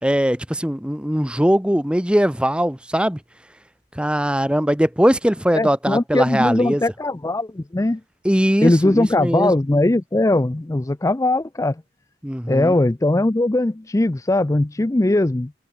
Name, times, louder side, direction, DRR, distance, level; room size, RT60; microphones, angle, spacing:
voice 1, 0.0-3.2 3.9-6.8 8.2-9.5 12.2-12.7, equal, 5° right, 1.2 m, -20 dB
voice 2, 5.6-8.0 8.6-11.7 12.5-15.5, left 2 dB, 15° left, 0.4 m, -20 dB
head